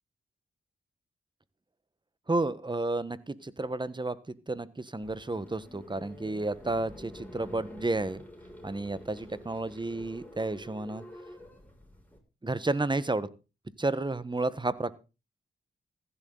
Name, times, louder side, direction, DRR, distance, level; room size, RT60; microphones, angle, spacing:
voice 1, 2.3-4.1 4.5-8.2 8.6-11.0 12.4-13.3 13.8-14.9, right 2 dB, 20° right, 15 dB, 1.3 m, -31 dB
sound 1, 5.0-12.2, left 1 dB, 10° left, 6.4 m, -48 dB
15.0 x 11.5 x 4.0 m, 0.31 s
cardioid pair, 50°, 21 cm